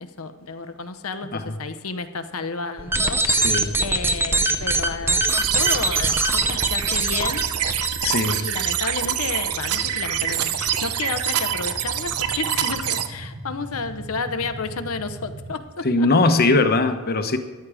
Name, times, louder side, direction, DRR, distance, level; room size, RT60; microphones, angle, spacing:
voice 1, 0.0-3.3 3.8-7.5 8.3-16.1, left 4 dB, 75° left, 9 dB, 0.8 m, -31 dB
sound 1, 2.8-7.9, right 2 dB, 10° right, 0.6 m, -22 dB
voice 2, 3.3-3.7 8.0-8.4 15.8-17.4, left 3 dB, 45° left, 8 dB, 1.0 m, -20 dB
sound 2, 3.6-15.6, equal, 60° right, 1.7 m, -39 dB
sound 3, 5.3-13.1, right 10 dB, 90° right, 0.8 m, -25 dB
14.0 x 10.0 x 4.9 m, 1.3 s
head